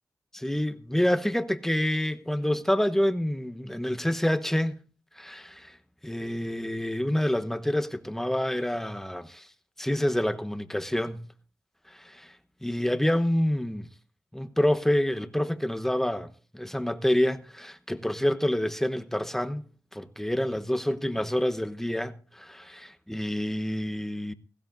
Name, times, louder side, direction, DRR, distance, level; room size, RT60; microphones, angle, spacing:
voice 1, 0.3-4.8 5.2-5.8 6.0-9.5 9.8-11.3 11.9-12.4 12.6-13.9 14.3-19.6 19.9-24.3, left 1 dB, 5° left, 1.0 m, -27 dB
17.5 x 15.5 x 2.6 m
cardioid pair, 55°, 7 cm